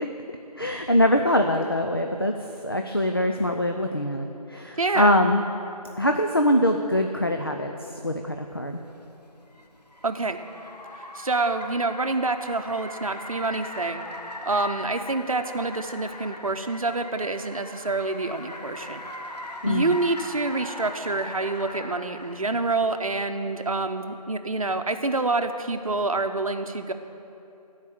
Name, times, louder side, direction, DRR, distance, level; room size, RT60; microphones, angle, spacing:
voice 1, 0.6-2.3 2.6-5.4 6.0-7.7 8.0-8.8 19.6-20.0, left 1 dB, 35° left, 4 dB, 0.4 m, -23 dB
voice 2, 4.8-5.1 10.0-10.4 11.1-14.0 14.5-19.0 19.7-26.9, right 3 dB, 60° right, 7 dB, 0.8 m, -27 dB
Car, 8.7-22.6, left 1 dB, 80° left, 1.4 m, -40 dB
14.5 x 4.8 x 8.3 m, 2.8 s
figure-of-eight pair, 170°, 20 cm